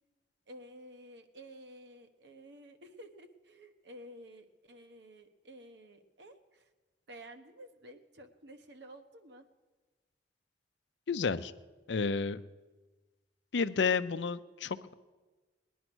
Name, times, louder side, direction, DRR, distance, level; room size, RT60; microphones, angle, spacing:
voice 1, 0.5-6.7 7.1-9.5, right 1 dB, 70° right, 7 dB, 1.2 m, -52 dB
voice 2, 11.1-11.5 11.9-12.4 13.5-14.9, left 5 dB, 75° left, 13 dB, 0.5 m, -31 dB
19.5 x 10.0 x 6.2 m, 1.3 s
head